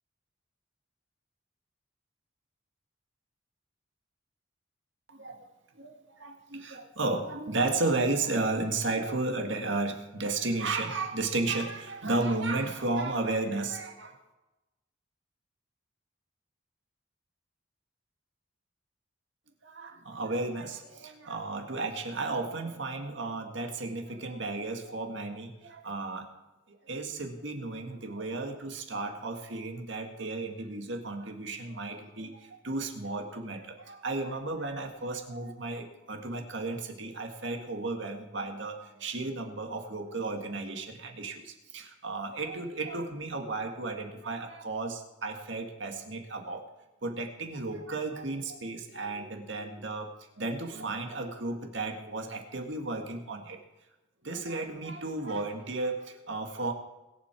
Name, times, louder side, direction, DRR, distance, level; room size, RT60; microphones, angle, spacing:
voice 1, 5.1-5.5 5.8-14.2 19.6-26.3 26.7-46.7 47.0-53.6 54.2-56.7, right 2 dB, 65° right, 4 dB, 1.9 m, -34 dB
21.0 x 7.5 x 4.7 m, 1.1 s
head